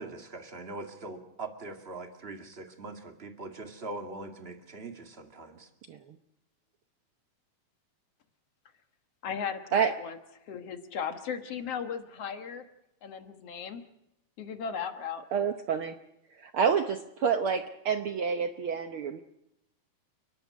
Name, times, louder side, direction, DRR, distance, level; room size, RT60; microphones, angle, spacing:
voice 1, 0.0-5.7, right 2 dB, 25° right, 5 dB, 1.6 m, -42 dB
voice 2, 9.2-10.2 10.5-12.6 13.0-13.8 14.4-15.2, left 7 dB, 55° left, 7 dB, 2.2 m, -36 dB
voice 3, 15.3-15.9 16.4-17.0 17.2-19.2, right 6 dB, 80° right, 7 dB, 1.2 m, -28 dB
29.5 x 11.5 x 9.4 m, 0.86 s
omnidirectional pair, 3.7 m